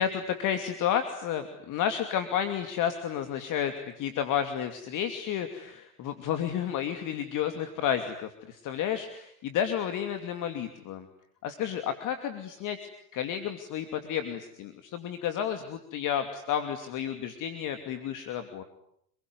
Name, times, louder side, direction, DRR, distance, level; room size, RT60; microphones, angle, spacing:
voice 1, 0.0-11.1 11.4-12.8 13.1-18.6, left 9 dB, 45° left, 8 dB, 2.8 m, -31 dB
28.0 x 22.0 x 9.7 m, 0.72 s
hypercardioid pair, 90°, 44 cm